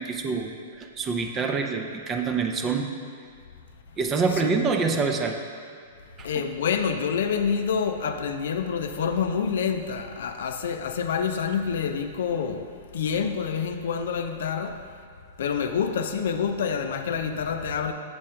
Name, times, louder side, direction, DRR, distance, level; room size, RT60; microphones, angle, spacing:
voice 1, 0.0-2.9 4.0-5.4 6.2-6.4, right 4 dB, 25° right, 4 dB, 0.6 m, -26 dB
voice 2, 6.2-14.8 15.4-17.9, left 6 dB, 70° left, 7 dB, 0.4 m, -27 dB
7.7 x 3.6 x 4.4 m, 2.2 s
hypercardioid pair, 120°, 0 cm